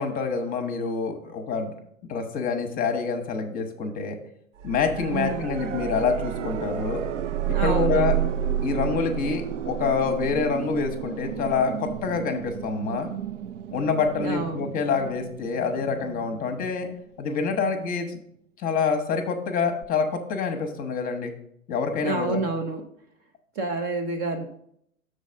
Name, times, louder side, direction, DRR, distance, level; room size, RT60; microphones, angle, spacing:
voice 1, 0.0-1.7 2.1-4.2 4.6-7.0 7.5-8.2 8.6-13.1 13.7-16.9 17.2-18.2 18.6-21.3 21.7-22.4, left 5 dB, 20° left, 6 dB, 0.9 m, -26 dB
sound 1, 4.6-17.5 19.8-19.9, right 10 dB, 65° right, 0.6 m, -31 dB
voice 2, 5.1-5.5 7.5-8.3 14.2-14.7 22.0-22.8 23.6-24.5, right 3 dB, 25° right, 5 dB, 0.6 m, -29 dB
6.5 x 4.1 x 6.3 m, 0.69 s
figure-of-eight pair, 105°, 40 cm